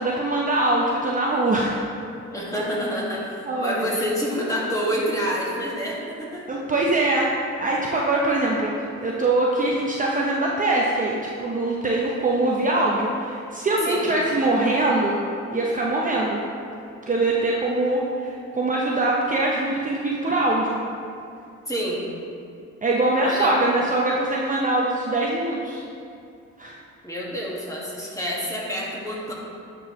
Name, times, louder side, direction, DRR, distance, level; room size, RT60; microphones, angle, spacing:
voice 1, 0.0-1.8 2.5-2.6 3.5-3.8 6.5-15.2 15.5-16.4 17.1-20.8 22.8-25.8 26.6-26.8, right 2 dB, 25° right, -3 dB, 0.7 m, -23 dB
voice 2, 2.3-6.5 13.8-14.1 21.7-22.0 23.2-23.5 27.0-29.3, equal, 10° left, -5 dB, 1.7 m, -28 dB
10.5 x 4.6 x 3.1 m, 2.4 s
cardioid pair, 90°, 30 cm